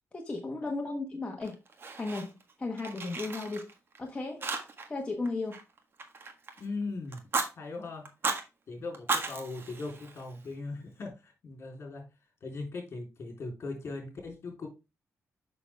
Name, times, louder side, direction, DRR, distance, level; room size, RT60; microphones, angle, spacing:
voice 1, 0.1-1.6 2.0-3.7 4.0-4.4 4.9-5.6, left 3 dB, 20° left, 1.2 m, -35 dB
Fire, 1.4-2.5 2.8-4.0 4.4-5.0 5.2-6.6 7.1-7.5 8.0-8.4 8.9-10.5, right 4 dB, 45° right, 1.5 m, -35 dB
voice 2, 6.6-7.2 7.6-8.1 8.7-12.1 12.4-14.7, left 3 dB, 50° left, 3.5 m, -39 dB
6.9 x 6.1 x 3.5 m
cardioid pair, 110°, 6 cm